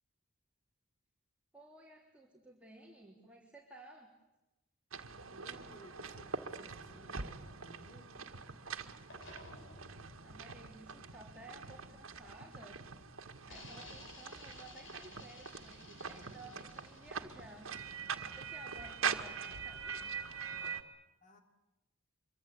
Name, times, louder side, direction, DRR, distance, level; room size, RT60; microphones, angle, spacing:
voice 1, 1.5-4.1 10.2-12.8 13.2-17.7 18.3-20.2, right 1 dB, 5° right, -3 dB, 3.4 m, -55 dB
sound 1, 4.9-20.8, right 6 dB, 80° right, 1.9 m, -43 dB
voice 2, 5.2-8.3 21.2-21.4, equal, 35° left, 4 dB, 3.6 m, -59 dB
sound 2, 6.4-8.7 9.1-12.7 13.4-19.2, left 2 dB, 65° left, 6.7 m, -57 dB
25.5 x 24.0 x 8.6 m, 0.98 s
head